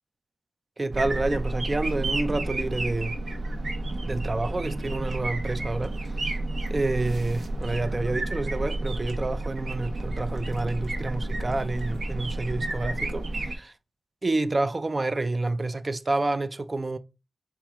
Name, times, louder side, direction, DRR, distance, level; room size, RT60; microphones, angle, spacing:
voice 1, 0.8-3.2 4.0-6.2 6.7-13.7 14.2-17.0, right 2 dB, 30° right, 0.3 m, -29 dB
sound 1, 0.9-13.6, right 2 dB, 65° right, 0.9 m, -31 dB
4.3 x 2.4 x 4.6 m
wide cardioid pair, 140°, 0 cm